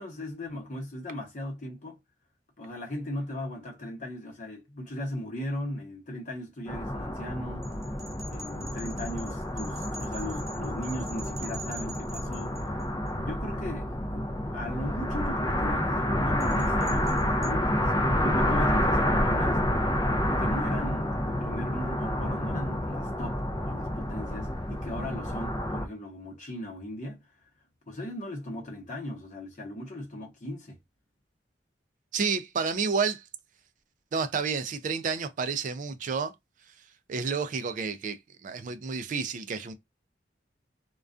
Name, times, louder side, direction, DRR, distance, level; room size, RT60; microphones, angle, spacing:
voice 1, 0.0-2.0 2.6-7.7 8.3-19.6 20.4-27.3 27.9-30.8, left 1 dB, 45° left, 0.8 m, -38 dB
sound 1, 6.7-25.9, left 1 dB, 25° left, 0.4 m, -29 dB
sound 2, 7.6-13.1 16.4-17.5, right 1 dB, 20° right, 0.8 m, -45 dB
voice 2, 32.1-33.2 34.1-36.3 37.1-39.7, right 5 dB, 45° right, 0.3 m, -30 dB
2.3 x 2.2 x 2.4 m
head